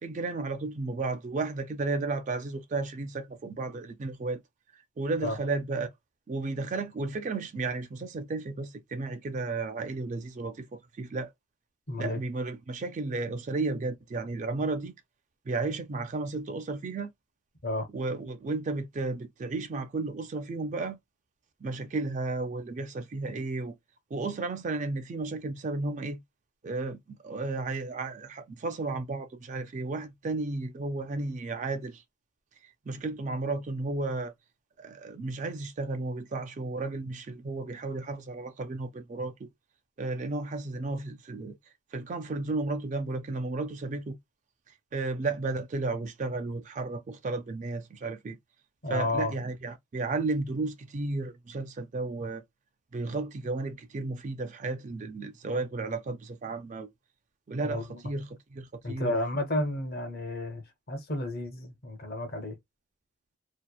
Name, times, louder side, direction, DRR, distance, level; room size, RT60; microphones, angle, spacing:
voice 1, 0.0-4.4 5.0-5.9 6.3-11.3 12.0-14.9 15.5-17.1 17.9-21.0 21.6-23.7 24.1-26.2 26.6-32.0 32.9-34.3 34.8-39.5 40.0-41.5 41.9-44.2 44.9-48.4 48.9-52.4 52.9-56.9 57.5-59.1, right 3 dB, 35° right, 0.3 m, -33 dB
voice 2, 11.9-12.2 17.6-17.9 48.8-49.3 57.6-58.0 58.8-62.6, left 1 dB, 45° left, 0.7 m, -32 dB
2.8 x 2.1 x 2.2 m
head